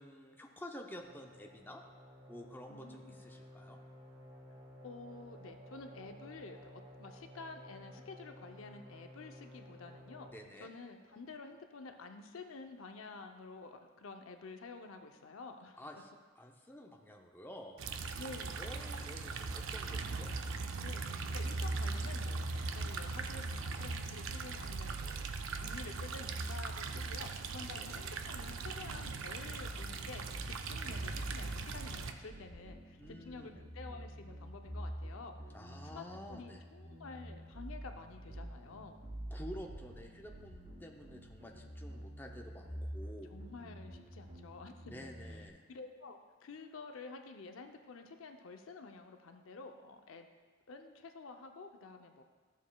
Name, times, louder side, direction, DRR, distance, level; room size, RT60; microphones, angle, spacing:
voice 1, 0.0-1.8 2.3-3.8 10.3-10.7 15.8-17.8 18.6-20.3 27.7-28.0 33.0-33.6 35.5-36.6 39.3-43.3 44.8-45.6, equal, 10° left, 2 dB, 0.5 m, -50 dB
sound 1, 1.0-10.4, equal, 30° right, 1.5 m, -54 dB
voice 2, 2.7-3.2 4.8-10.3 10.6-15.8 18.2-18.8 20.8-25.3 25.6-35.4 35.9-39.1 43.3-45.1 45.7-50.3 50.7-52.2, left 3 dB, 80° left, 6 dB, 0.6 m, -50 dB
sound 2, 17.8-32.1, right 3 dB, 75° right, 0.5 m, -39 dB
sound 3, 29.5-45.5, right 1 dB, 50° right, 2.3 m, -47 dB
13.0 x 7.2 x 2.3 m, 1.5 s
head